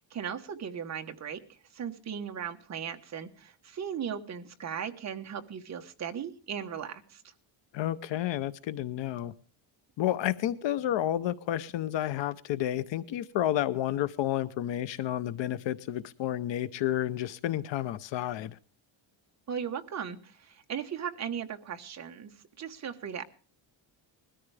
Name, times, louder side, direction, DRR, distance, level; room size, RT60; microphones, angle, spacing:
voice 1, 0.0-7.3 19.5-22.3 22.6-23.2, right 8 dB, 35° right, 1.2 m, -37 dB
voice 2, 7.7-9.3 10.0-18.6, left 12 dB, 65° left, 0.8 m, -30 dB
21.0 x 13.5 x 3.4 m
cardioid pair, 175°, 47 cm